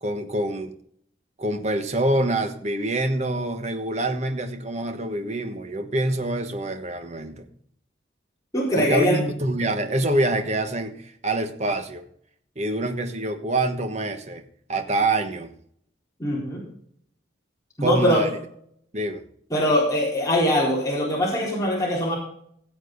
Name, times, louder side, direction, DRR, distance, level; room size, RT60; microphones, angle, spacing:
voice 1, 0.0-0.7 1.4-7.5 8.8-12.1 12.6-14.4 14.7-15.5 17.8-18.3 18.9-19.2, right 2 dB, 35° right, 6 dB, 1.3 m, -26 dB
voice 2, 8.5-9.2 16.2-16.6 17.8-18.2 19.5-22.2, equal, 20° left, -5 dB, 4.0 m, -22 dB
16.5 x 7.8 x 3.9 m, 0.64 s
head